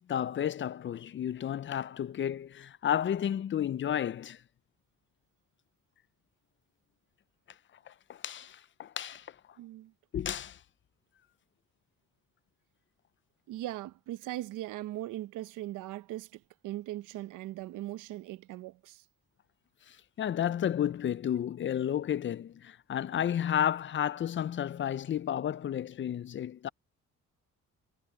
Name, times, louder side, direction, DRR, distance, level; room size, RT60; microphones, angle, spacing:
voice 1, 0.0-4.4 7.9-9.3 10.1-10.6 19.9-26.7, left 10 dB, 40° left, 0.5 m, -32 dB
voice 2, 9.6-9.9 13.5-19.0, right 15 dB, 90° right, 0.8 m, -39 dB
cardioid pair, 90°, 30 cm